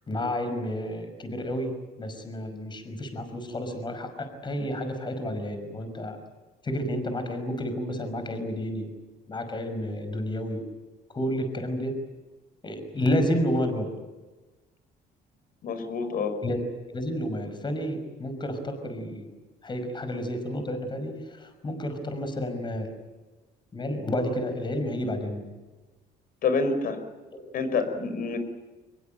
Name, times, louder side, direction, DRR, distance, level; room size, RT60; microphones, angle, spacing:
voice 1, 0.1-6.2 6.6-8.9 9.3-10.6 11.1-12.0 12.6-13.9 16.4-16.6 16.9-19.3 19.6-23.0 23.7-25.5 27.3-27.4, equal, 25° left, 8 dB, 5.6 m, -30 dB
voice 2, 15.6-16.4 26.4-27.0 27.5-28.4, left 4 dB, 60° left, 9 dB, 5.1 m, -27 dB
24.5 x 22.0 x 9.2 m, 1.2 s
cardioid pair, 110°, 17 cm